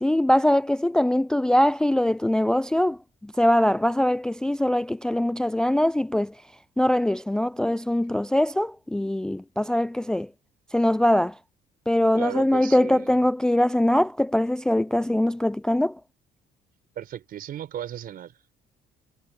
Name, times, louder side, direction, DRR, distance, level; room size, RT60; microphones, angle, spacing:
voice 1, 0.0-6.3 6.8-10.3 10.7-11.4 11.9-16.0, left 1 dB, 5° left, 0.3 m, -22 dB
voice 2, 12.1-13.2 17.0-18.4, right 10 dB, 60° right, 5.5 m, -36 dB
cardioid pair, 110°, 17 cm